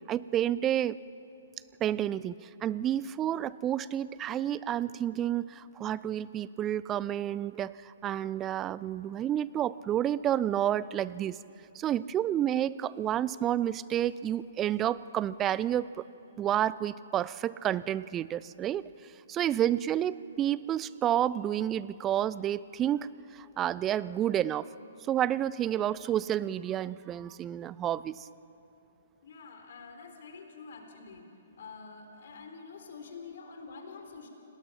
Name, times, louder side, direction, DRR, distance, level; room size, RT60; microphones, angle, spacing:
voice 1, 0.1-1.0 1.8-11.4 11.7-16.0 16.4-18.9 19.3-24.7 25.1-28.3, right 11 dB, 20° right, 19 dB, 0.4 m, -30 dB
voice 2, 19.4-19.8 29.2-34.3, left 4 dB, 60° left, 4 dB, 3.8 m, -47 dB
28.5 x 19.0 x 5.8 m, 2.9 s
figure-of-eight pair, 125°, 0 cm